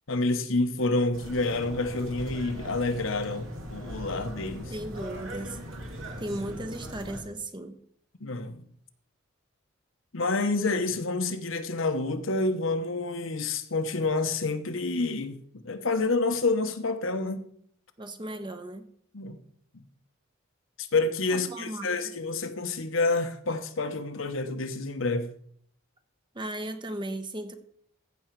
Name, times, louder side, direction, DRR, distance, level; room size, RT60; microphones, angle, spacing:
voice 1, 0.1-4.7 8.2-8.6 10.1-15.4 15.6-17.4 19.1-19.4 19.7-19.8 20.8-25.3, left 3 dB, 70° left, 1.0 m, -28 dB
sound 1, 1.1-7.2, equal, 75° right, 2.5 m, -40 dB
voice 2, 4.7-5.6 6.2-7.8 18.0-18.8 21.3-22.1 26.3-27.6, right 1 dB, 25° right, 1.0 m, -36 dB
15.0 x 6.3 x 4.6 m
head